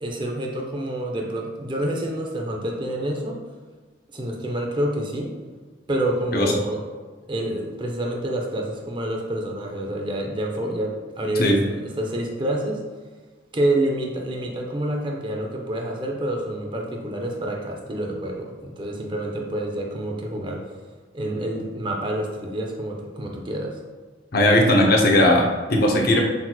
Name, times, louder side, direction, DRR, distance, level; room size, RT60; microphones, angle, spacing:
voice 1, 0.0-3.4 4.1-5.3 5.9-6.8 7.3-12.8 13.5-20.6 21.1-23.8, right 1 dB, 25° right, 1 dB, 0.5 m, -27 dB
voice 2, 24.3-26.2, left 1 dB, 55° left, 1 dB, 0.7 m, -18 dB
5.8 x 2.8 x 2.3 m, 1.4 s
head